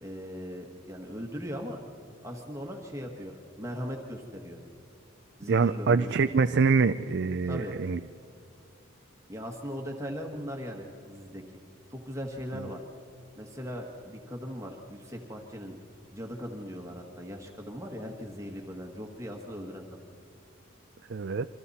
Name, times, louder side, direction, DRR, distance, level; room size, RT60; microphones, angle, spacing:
voice 1, 0.0-1.8 2.2-4.6 5.4-6.5 7.4-7.8 9.3-11.4 11.9-12.8 13.4-15.8 16.1-20.0, equal, 15° right, 1 dB, 1.5 m, -39 dB
voice 2, 5.5-8.0 21.1-21.5, right 4 dB, 55° right, 10 dB, 0.4 m, -25 dB
28.0 x 24.5 x 4.2 m, 2.8 s
head